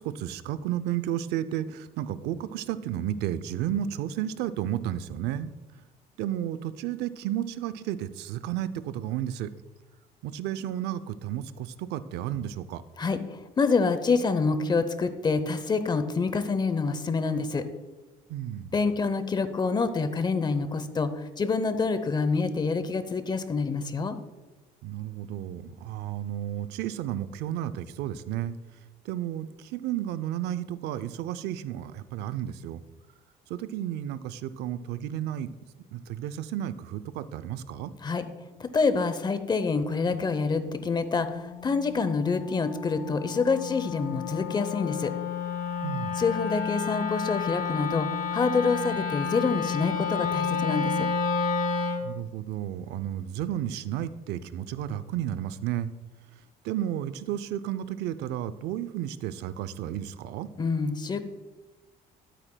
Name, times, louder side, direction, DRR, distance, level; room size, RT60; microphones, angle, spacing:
voice 1, 0.0-5.5 6.2-9.5 10.2-12.8 18.3-18.7 24.8-28.5 29.1-32.8 33.5-35.5 35.9-37.9 45.8-46.2 52.0-55.9 56.6-60.5, right 11 dB, 85° right, 15 dB, 0.5 m, -32 dB
voice 2, 13.0-17.6 18.7-24.2 38.0-38.2 38.6-45.1 46.2-48.1 48.3-51.1 60.6-61.2, left 4 dB, 25° left, 11 dB, 0.7 m, -27 dB
Wind instrument woodwind instrument, 40.5-52.1, left 6 dB, 55° left, 0.9 m, -31 dB
11.5 x 8.6 x 2.2 m, 1.1 s
cardioid pair, 110°, 17 cm